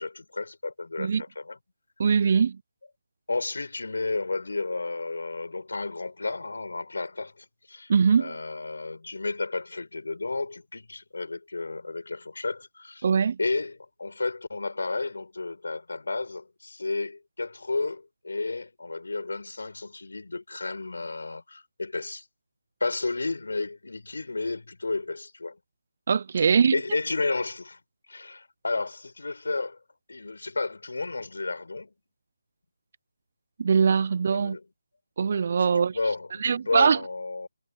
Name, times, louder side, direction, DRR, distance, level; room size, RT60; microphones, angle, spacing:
voice 1, 0.0-1.6 2.0-2.3 3.3-7.9 8.2-13.1 13.4-22.2 22.8-25.6 26.4-27.8 28.1-29.8 30.1-31.9 34.3-34.7 35.6-37.5, left 3 dB, 70° left, 4.9 m, -32 dB
voice 2, 2.0-2.6 7.9-8.3 13.0-13.4 26.1-26.7 33.6-34.6 35.2-36.0 36.4-37.0, right 6 dB, 35° right, 0.3 m, -22 dB
figure-of-eight pair, 170°, 0 cm